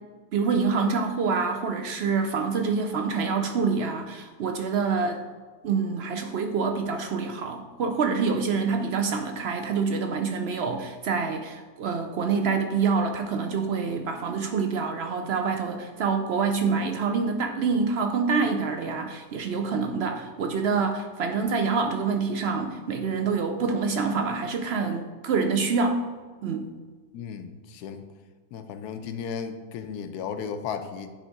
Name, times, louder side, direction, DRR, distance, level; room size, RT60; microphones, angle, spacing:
voice 1, 0.3-5.2 5.6-26.0 26.4-26.7, right 5 dB, 70° right, 5 dB, 0.6 m, -26 dB
voice 2, 27.1-28.0 28.5-31.1, left 6 dB, 85° left, 8 dB, 1.1 m, -35 dB
10.0 x 3.5 x 4.0 m, 1.4 s
omnidirectional pair, 1.6 m